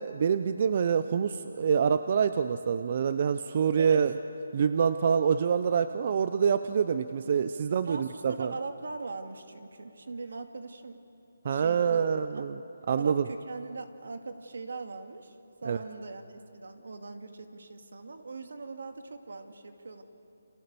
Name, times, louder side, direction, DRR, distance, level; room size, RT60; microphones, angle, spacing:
voice 1, 0.0-4.1 4.5-8.5 11.4-12.5 12.9-13.2 15.6-15.8, right 7 dB, 40° right, 11 dB, 0.6 m, -26 dB
voice 2, 7.8-11.0 11.5-12.0 12.3-12.5 13.0-15.3 15.6-20.0, right 3 dB, 70° right, 6 dB, 2.2 m, -41 dB
30.0 x 26.5 x 6.9 m, 2.8 s
hypercardioid pair, 170°, 0 cm